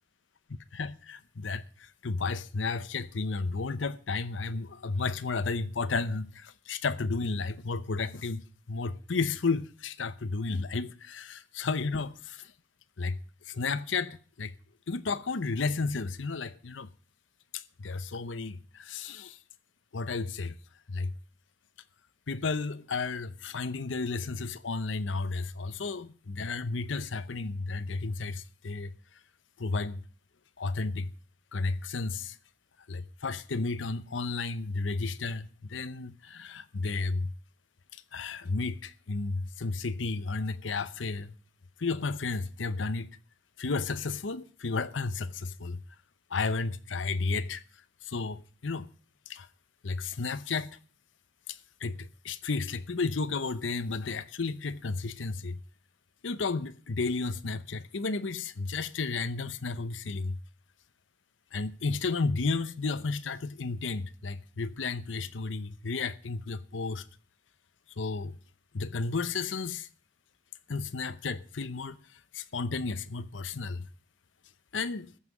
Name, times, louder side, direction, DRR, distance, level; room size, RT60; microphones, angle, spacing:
voice 1, 0.7-12.5 13.0-13.2 13.5-14.5 14.9-16.9 17.5-19.4 19.9-20.5 20.9-21.1 22.3-28.9 29.6-30.0 30.6-31.1 31.5-32.4 32.9-37.3 37.9-41.3 41.8-43.1 43.6-45.8 46.3-47.6 48.0-48.9 49.3-49.5 49.8-50.7 51.5-55.6 56.2-60.4 61.5-67.1 68.0-68.3 68.7-69.9 70.7-72.0 72.3-73.9 74.7-75.1, left 4 dB, 90° left, 0.8 m, -33 dB
14.0 x 5.7 x 9.0 m
head